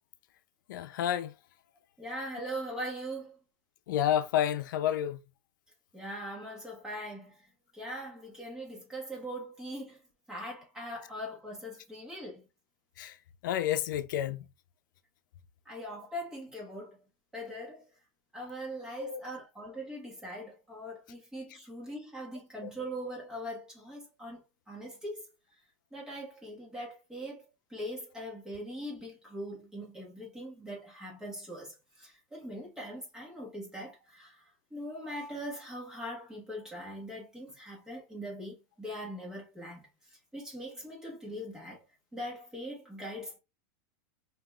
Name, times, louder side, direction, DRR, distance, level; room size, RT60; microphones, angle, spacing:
voice 1, 0.7-1.3 3.9-5.2 13.0-13.2 13.4-14.4 19.0-19.2 22.6-22.7, left 11 dB, 90° left, 0.5 m, -30 dB
voice 2, 2.0-3.4 5.9-7.4 7.7-10.0 10.3-12.4 15.6-17.0 17.3-17.8 18.3-25.2 25.9-34.4 34.7-39.8 40.3-41.8 42.1-43.4, equal, 5° right, 1.4 m, -41 dB
5.3 x 2.9 x 2.4 m
supercardioid pair, 160°, 10 cm